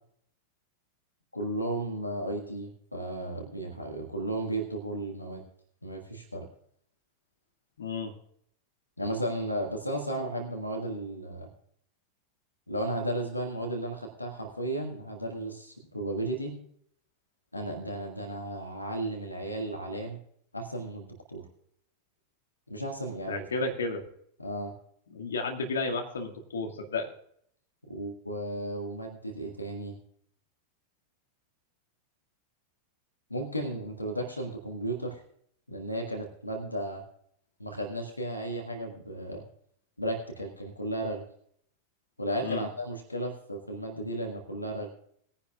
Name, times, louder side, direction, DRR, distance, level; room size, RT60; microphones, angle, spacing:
voice 1, 1.3-5.4 5.8-6.5 9.0-11.5 12.7-16.5 17.5-20.2 20.5-21.4 22.7-23.7 24.4-24.7 27.9-30.0 33.3-35.2 35.7-37.0 37.6-39.4 40.0-41.2 42.2-44.9, right 1 dB, 85° left, 2 dB, 1.7 m, -34 dB
voice 2, 7.8-8.1 23.3-24.0 25.1-27.1 42.4-42.7, left 3 dB, 70° left, 2 dB, 1.9 m, -32 dB
20.0 x 10.0 x 2.3 m, 0.66 s
figure-of-eight pair, 90°, 0 cm